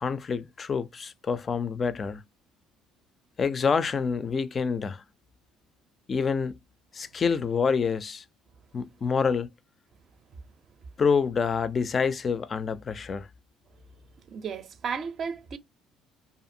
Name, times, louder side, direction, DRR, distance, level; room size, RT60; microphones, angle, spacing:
voice 1, 0.0-2.2 3.4-5.0 6.1-6.6 6.9-8.2 8.7-9.5 11.0-13.3, left 5 dB, 35° left, 0.3 m, -27 dB
voice 2, 14.3-15.6, right 6 dB, 45° right, 0.5 m, -34 dB
2.5 x 2.5 x 2.6 m
cardioid pair, 105°, 0 cm